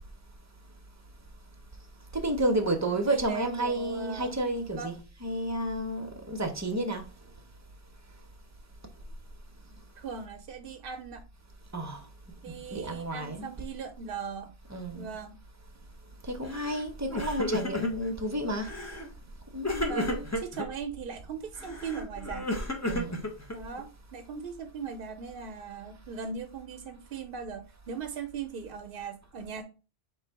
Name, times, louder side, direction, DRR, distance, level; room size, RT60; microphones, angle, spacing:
voice 1, 2.1-4.9 5.2-7.0 11.7-12.0 12.5-13.5 14.7-15.1 16.3-18.7 19.5-20.3 22.8-23.2, right 1 dB, 20° right, 0.6 m, -31 dB
voice 2, 3.1-4.3 4.7-4.9 10.0-11.2 12.4-14.5 14.9-15.4 19.8-22.5 23.5-29.6, right 5 dB, 65° right, 0.7 m, -39 dB
Crying sobbing, 16.5-16.8 17.1-18.1 18.6-19.1 19.6-20.7 21.6-23.8, left 1 dB, 20° left, 0.7 m, -33 dB
3.7 x 3.0 x 4.5 m
omnidirectional pair, 1.0 m